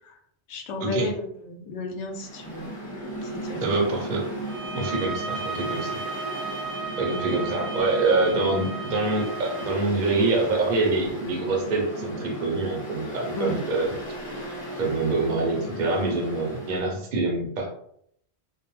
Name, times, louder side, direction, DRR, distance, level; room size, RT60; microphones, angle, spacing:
voice 1, 0.5-2.7 3.2-3.8 13.3-13.6, left 2 dB, 90° left, 3 dB, 0.9 m, -33 dB
Mechanical fan, 2.1-16.9, right 1 dB, 20° left, 0.9 m, -36 dB
voice 2, 3.6-4.2 4.7-5.9 7.0-13.9 14.8-17.7, right 3 dB, 50° right, 0 dB, 0.7 m, -25 dB
sound 1, 4.4-9.8, right 4 dB, 80° right, 1.0 m, -35 dB
2.3 x 2.0 x 3.0 m, 0.68 s
omnidirectional pair, 1.2 m